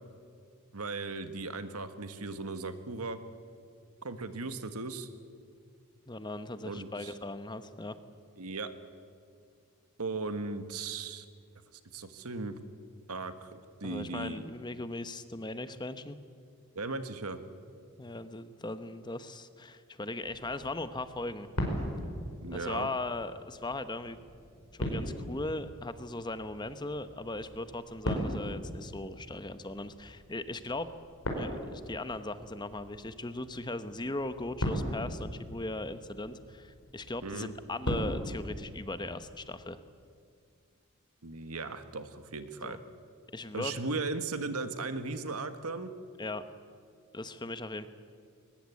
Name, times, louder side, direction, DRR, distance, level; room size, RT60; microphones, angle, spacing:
voice 1, 0.7-3.2 4.0-5.1 6.6-7.1 8.4-8.7 10.0-11.2 11.9-12.6 13.1-14.5 16.7-17.4 22.4-22.9 37.2-37.5 41.2-42.8 43.5-45.9, right 3 dB, 90° right, 9 dB, 1.6 m, -37 dB
voice 2, 6.1-8.0 13.8-16.2 18.0-21.5 22.5-24.2 24.7-30.9 31.4-39.8 42.6-42.8 43.3-43.7 46.2-46.4 47.1-47.9, left 2 dB, 20° left, 11 dB, 0.9 m, -38 dB
sound 1, 20.2-39.5, equal, 80° left, 5.1 m, -39 dB
22.0 x 20.5 x 8.4 m, 2.2 s
head